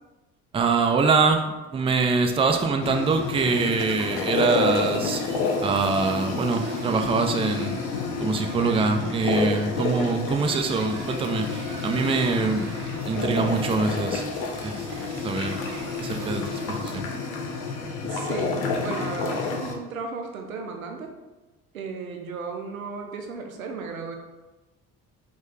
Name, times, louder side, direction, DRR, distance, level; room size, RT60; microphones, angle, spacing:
voice 1, 0.5-5.2 5.6-7.8 8.2-12.7 13.1-14.3 14.6-15.6 16.0-17.1, right 4 dB, 15° right, 5 dB, 0.4 m, -24 dB
sound 1, 2.8-19.7, left 4 dB, 60° left, 0.8 m, -29 dB
sound 2, 3.3-16.8, right 5 dB, 45° right, 0.7 m, -44 dB
voice 2, 18.0-21.1 21.7-24.2, right 4 dB, 85° right, 3 dB, 0.5 m, -35 dB
5.0 x 2.3 x 3.7 m, 1.1 s
figure-of-eight pair, 50°, 41 cm